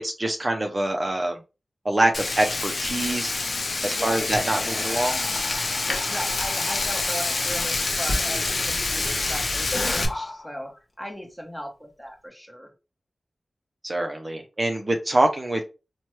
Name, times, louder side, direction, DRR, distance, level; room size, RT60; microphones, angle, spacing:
voice 1, 0.0-1.4 1.8-3.3 3.8-5.2 13.8-15.6, right 1 dB, 35° right, 3 dB, 0.5 m, -25 dB
Frying (food), 2.1-10.1, left 3 dB, 65° left, 0.6 m, -27 dB
Whispering, 4.3-10.7, left 1 dB, 50° left, 1.0 m, -36 dB
voice 2, 6.1-10.7 11.0-12.7, equal, 5° left, 2 dB, 1.0 m, -37 dB
2.9 x 2.2 x 3.0 m, 0.29 s
cardioid pair, 50°, 0 cm